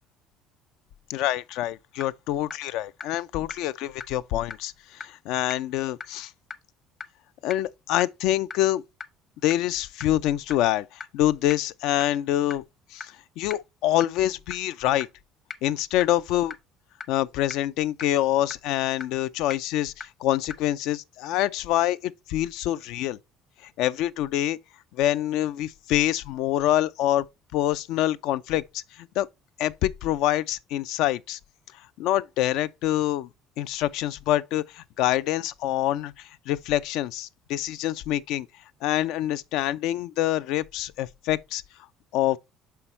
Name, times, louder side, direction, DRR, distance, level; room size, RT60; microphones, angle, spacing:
voice 1, 1.1-6.3 7.4-8.8 9.4-12.6 12.9-15.1 15.6-16.5 17.1-23.2 23.6-24.6 24.9-29.3 29.6-31.4 32.0-33.3 33.6-38.5 38.8-41.6 42.1-42.4, left 13 dB, 75° left, 0.3 m, -26 dB
sound 1, 1.5-1.6 2.0-2.1 2.5-2.6 3.0-3.1 3.5-3.6 4.0-4.1 4.5-4.6 5.0-5.1 5.5-5.6 6.0-6.1 6.5-6.6 7.0-7.1 7.5-7.6 8.0-8.1 8.5-8.6 9.0-9.1 9.5-9.6 10.0-10.1 10.5-10.6 11.0-11.1 11.5-11.6 12.0-12.1 12.5-12.6 13.0-13.1 13.5-13.6 14.0-14.1 14.5-14.6 15.0-15.1 15.5-15.6 16.0-16.1 16.5-16.6 17.0-17.1 17.5-17.6 18.0-18.1 18.5-18.6 19.0-19.1 19.5-19.6 20.0-20.1 20.5-20.6, left 5 dB, 35° left, 0.7 m, -35 dB
6.0 x 5.7 x 3.1 m
supercardioid pair, 95°, 0 cm